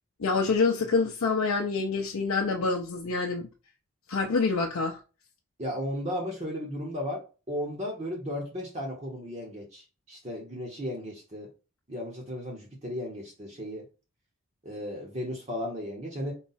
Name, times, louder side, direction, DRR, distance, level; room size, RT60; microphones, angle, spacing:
voice 1, 0.2-3.5 4.1-5.0, left 4 dB, 85° left, 0.5 m, -26 dB
voice 2, 5.6-11.5 11.9-13.8 14.6-16.3, equal, 30° right, 0.9 m, -35 dB
4.0 x 2.3 x 4.0 m
head